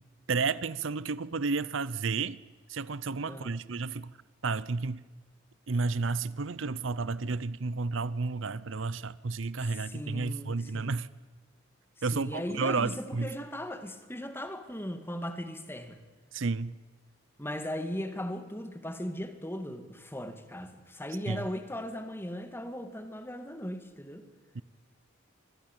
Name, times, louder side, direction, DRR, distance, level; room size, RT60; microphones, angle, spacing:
voice 1, 0.3-2.4 2.7-4.1 4.4-5.0 5.7-11.1 12.0-13.3 16.3-16.7 21.3-21.5 24.5-24.6, right 4 dB, 70° right, 0.7 m, -31 dB
voice 2, 3.3-3.6 9.7-10.9 12.1-16.0 17.4-24.2, equal, 10° left, 2.2 m, -38 dB
26.5 x 20.5 x 9.0 m
head